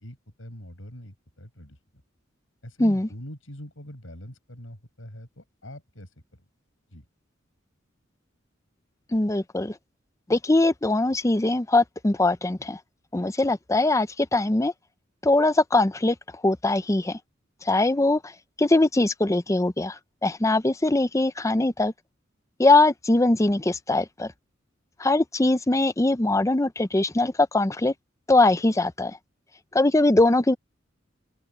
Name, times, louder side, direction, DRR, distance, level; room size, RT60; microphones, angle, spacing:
voice 1, 0.0-1.8 2.6-6.1 6.9-7.0, equal, 85° left, 6.9 m, -43 dB
voice 2, 9.1-9.7 10.3-12.8 13.1-14.7 15.2-16.1 16.4-17.2 17.7-18.2 18.6-21.9 22.6-24.3 25.0-27.9 28.3-29.2 29.7-30.6, left 2 dB, 15° left, 0.6 m, -21 dB
open air
head